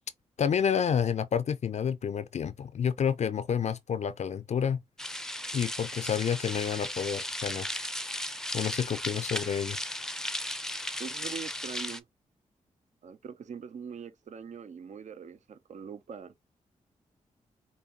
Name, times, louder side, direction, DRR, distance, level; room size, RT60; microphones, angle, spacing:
voice 1, 0.4-4.8 5.5-7.7 8.5-9.8, left 7 dB, 55° left, 0.4 m, -29 dB
sound 1, 5.0-12.0, left 1 dB, 5° left, 0.5 m, -36 dB
voice 2, 11.0-12.1 13.0-16.3, right 6 dB, 60° right, 0.5 m, -42 dB
5.1 x 2.2 x 2.7 m
supercardioid pair, 45°, 14 cm